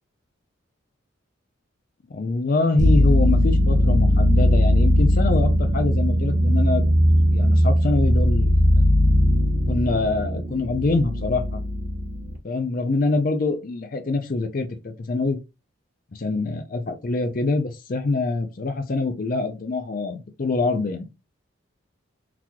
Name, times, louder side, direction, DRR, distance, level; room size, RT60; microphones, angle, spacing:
voice 1, 2.1-6.8 7.3-8.6 9.7-11.6 12.4-15.4 16.1-21.1, left 3 dB, 45° left, 0.4 m, -25 dB
sound 1, 2.8-12.4, equal, 35° right, 0.6 m, -19 dB
3.9 x 2.9 x 2.3 m
head